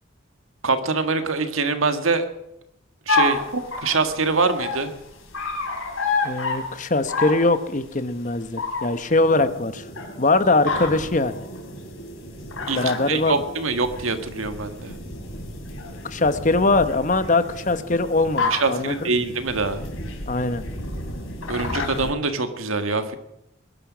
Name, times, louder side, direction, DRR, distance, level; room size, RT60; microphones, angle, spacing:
voice 1, 0.6-2.3 3.1-4.9 12.7-14.9 18.5-19.8 21.5-23.2, right 3 dB, 85° right, 8 dB, 1.7 m, -24 dB
sound 1, 3.1-22.1, left 3 dB, 85° left, 3.9 m, -30 dB
voice 2, 6.2-9.9 10.2-11.4 12.8-13.3 16.0-19.2 20.3-20.6, left 2 dB, 35° left, 11 dB, 0.9 m, -22 dB
20.5 x 11.0 x 6.1 m, 0.84 s
head